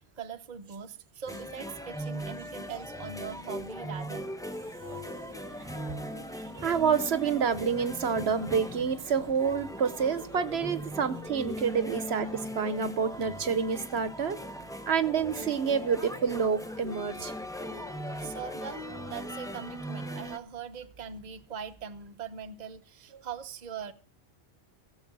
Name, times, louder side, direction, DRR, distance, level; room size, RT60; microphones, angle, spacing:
voice 1, 0.2-4.3 18.2-23.9, right 7 dB, 45° right, 9 dB, 0.9 m, -41 dB
sound 1, 1.3-20.4, equal, 5° left, 0.8 m, -39 dB
sound 2, 4.1-19.3, left 3 dB, 55° left, 3.4 m, -50 dB
voice 2, 6.5-14.4 14.9-17.3, right 6 dB, 70° right, 13 dB, 1.2 m, -28 dB
15.5 x 7.2 x 6.1 m, 0.37 s
omnidirectional pair, 1.1 m